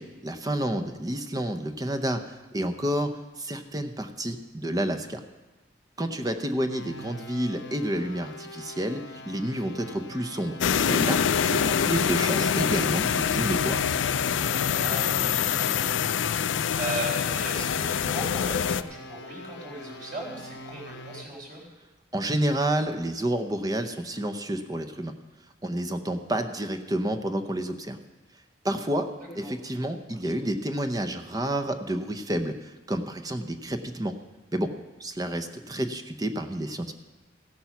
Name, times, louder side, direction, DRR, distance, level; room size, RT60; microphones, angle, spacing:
voice 1, 0.0-3.1 3.4-5.2 6.0-10.6 10.9-13.9 22.1-25.1 25.6-28.0 28.6-29.1 29.3-34.1 34.5-34.7 35.0-36.9, right 1 dB, 20° right, 8 dB, 0.7 m, -29 dB
sound 1, 6.7-21.3, equal, 70° left, 0.9 m, -43 dB
sound 2, 10.6-18.8, left 7 dB, 85° left, 0.4 m, -25 dB
voice 2, 14.8-15.7 16.0-16.2 16.5-21.6 29.4-29.8 30.1-30.3, right 1 dB, 45° right, -3 dB, 4.2 m, -37 dB
15.5 x 8.6 x 5.9 m, 1.2 s
head